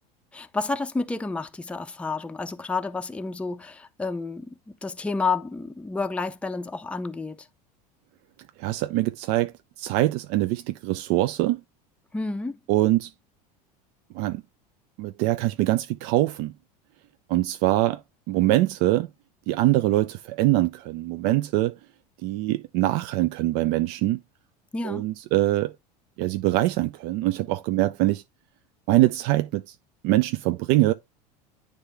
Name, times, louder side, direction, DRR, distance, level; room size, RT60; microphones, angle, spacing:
voice 1, 0.3-7.5 12.1-12.6 24.7-25.1, left 3 dB, 5° left, 0.5 m, -30 dB
voice 2, 8.6-9.5 9.8-11.6 12.7-13.1 14.1-14.4 15.0-16.5 17.3-18.0 18.3-19.1 19.5-21.7 22.2-24.2 24.8-25.7 26.2-28.2 28.9-29.8 30.0-30.9, right 16 dB, 55° right, 0.5 m, -23 dB
9.7 x 3.4 x 3.4 m
hypercardioid pair, 90°, 21 cm